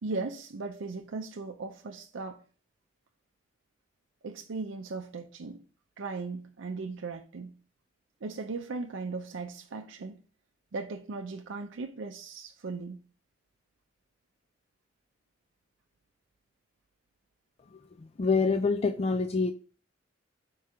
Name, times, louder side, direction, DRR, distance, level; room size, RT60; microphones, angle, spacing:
voice 1, 0.0-2.4 4.2-5.6 6.0-7.5 8.2-10.2 10.7-13.0, right 3 dB, 80° right, 0.5 m, -37 dB
voice 2, 17.7-19.5, left 4 dB, 35° left, 0.4 m, -27 dB
4.6 x 4.4 x 4.8 m
head